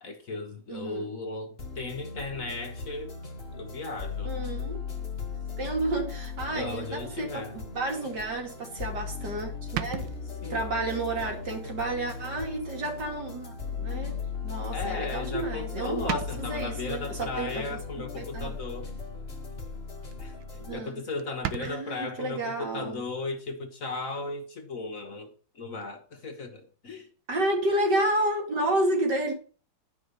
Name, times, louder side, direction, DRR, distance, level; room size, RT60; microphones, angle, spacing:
voice 1, 0.0-3.1 3.6-4.4 6.5-7.5 10.4-10.8 14.7-18.9 20.2-20.4 20.7-25.3 25.5-27.1, left 3 dB, 50° left, 1.5 m, -36 dB
voice 2, 0.7-1.1 4.2-4.8 5.6-10.1 10.5-17.7 18.0-18.5 20.5-21.0 21.6-23.0 27.3-29.3, right 1 dB, 60° right, 3.0 m, -31 dB
sound 1, 1.6-20.8, left 5 dB, 30° left, 1.8 m, -37 dB
sound 2, 9.7-10.7 11.3-11.6 12.0-12.1 13.4-13.5 15.2-15.5 15.8-15.9 16.1-16.7 18.6-19.1 19.5-19.8 20.1-20.2 20.4-20.5 20.8-20.9 21.2-21.7, right 12 dB, 80° right, 1.4 m, -36 dB
12.0 x 4.8 x 6.7 m
omnidirectional pair, 2.0 m